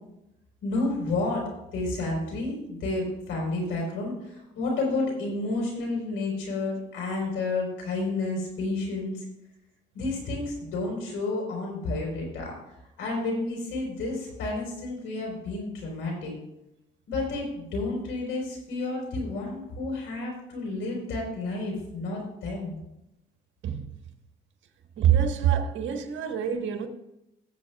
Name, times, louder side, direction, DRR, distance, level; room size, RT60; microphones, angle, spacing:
voice 1, 0.6-1.4 1.7-9.2 9.9-12.5 13.0-16.3 17.1-22.8, left 2 dB, 85° left, 4.2 m, -30 dB
voice 2, 23.6-23.9 25.0-26.9, right 9 dB, 70° right, 1.3 m, -25 dB
17.5 x 8.1 x 2.3 m
cardioid pair, 90°, 20 cm